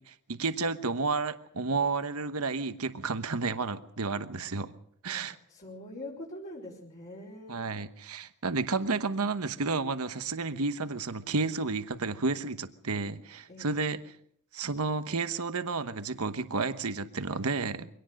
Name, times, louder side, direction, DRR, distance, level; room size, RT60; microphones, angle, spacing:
voice 1, 0.1-4.7 5.0-5.4 7.5-14.0 14.5-17.9, right 4 dB, 80° right, 10 dB, 1.1 m, -31 dB
voice 2, 5.1-7.6 13.5-13.9, left 1 dB, 40° left, -5 dB, 4.8 m, -44 dB
24.5 x 18.0 x 6.5 m, 0.65 s
head